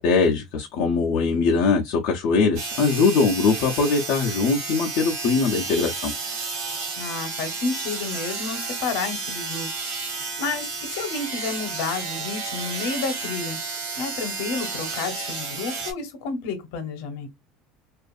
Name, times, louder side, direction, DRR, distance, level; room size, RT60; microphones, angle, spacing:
voice 1, 0.0-6.1, left 4 dB, 50° left, 0.5 m, -21 dB
sound 1, 2.6-15.9, right 4 dB, 65° right, 1.1 m, -32 dB
voice 2, 7.0-13.6 14.0-17.3, left 4 dB, 70° left, 0.9 m, -31 dB
2.5 x 2.4 x 2.4 m
cardioid pair, 175°, 0 cm